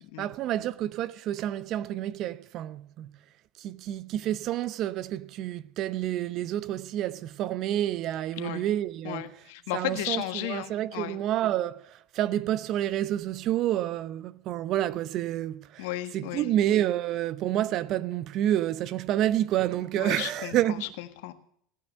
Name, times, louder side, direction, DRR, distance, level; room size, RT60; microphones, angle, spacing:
voice 1, 0.0-3.1 3.6-9.3 9.7-15.9 16.1-20.8, right 12 dB, 50° right, 0.7 m, -29 dB
voice 2, 9.0-11.2 15.8-16.5 19.9-21.3, left 15 dB, 65° left, 1.5 m, -34 dB
17.0 x 9.6 x 6.6 m
hypercardioid pair, 80°, 0 cm